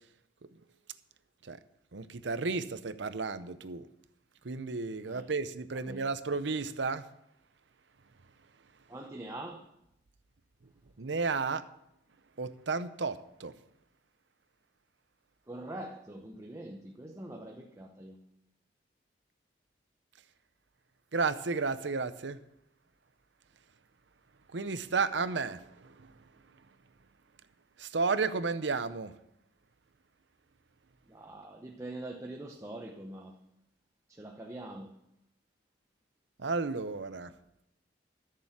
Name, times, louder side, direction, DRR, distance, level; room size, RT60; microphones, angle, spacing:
voice 1, 1.9-3.9 4.4-7.0 11.0-11.6 12.4-13.5 21.1-22.4 24.5-25.9 27.8-29.1 36.4-37.3, right 4 dB, 75° right, 0.7 m, -32 dB
voice 2, 8.9-9.7 15.5-18.2 31.1-33.3 34.1-34.9, right 1 dB, 15° right, 0.8 m, -43 dB
14.0 x 6.8 x 7.4 m
head